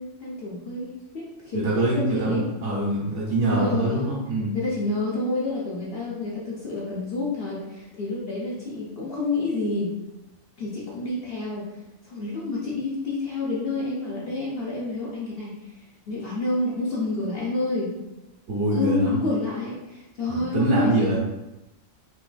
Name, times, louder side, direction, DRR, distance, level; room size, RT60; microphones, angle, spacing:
voice 1, 0.0-2.4 3.4-4.1 4.5-9.9 10.6-17.9 18.7-21.2, left 3 dB, 55° left, -5 dB, 0.8 m, -29 dB
voice 2, 1.5-4.6 18.5-19.2 20.3-21.2, right 2 dB, 60° right, -5 dB, 1.3 m, -24 dB
3.8 x 2.9 x 2.4 m, 0.97 s
omnidirectional pair, 1.4 m